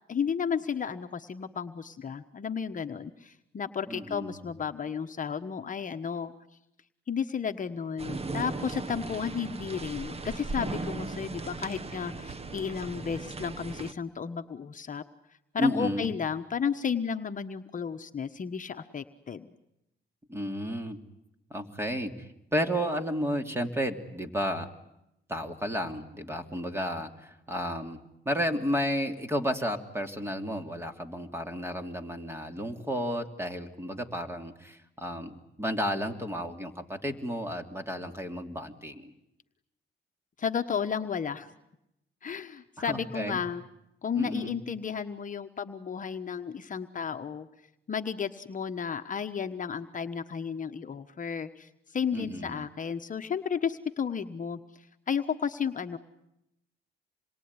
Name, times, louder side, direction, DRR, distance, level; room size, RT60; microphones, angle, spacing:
voice 1, 0.1-6.3 7.1-15.0 15.5-19.5 40.4-41.5 42.2-43.6 44.0-47.5 47.9-56.0, left 7 dB, 40° left, 6 dB, 1.2 m, -33 dB
voice 2, 3.9-4.4 15.6-16.1 20.3-21.0 21.5-24.7 25.3-39.1 42.8-43.4 44.2-44.6 52.1-52.7, equal, 10° right, 6 dB, 3.0 m, -32 dB
sound 1, 8.0-13.9, right 3 dB, 30° right, 1.3 m, -37 dB
27.5 x 22.5 x 9.8 m, 0.85 s
cardioid pair, 90°, 20 cm